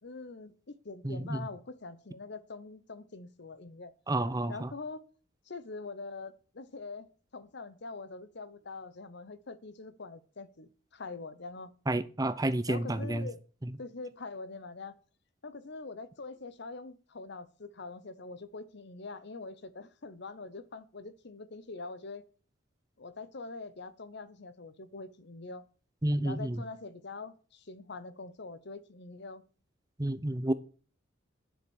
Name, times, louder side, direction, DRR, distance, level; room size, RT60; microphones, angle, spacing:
voice 1, 0.0-3.9 4.5-5.0 5.5-11.7 12.7-13.4 13.8-15.0 15.4-22.2 23.0-25.6 26.2-29.4, left 3 dB, 60° left, 0.9 m, -44 dB
voice 2, 1.0-1.5 4.1-4.7 11.9-13.3 13.6-13.7 26.0-26.6 30.0-30.5, right 1 dB, 20° right, 0.7 m, -30 dB
10.5 x 7.2 x 6.3 m
head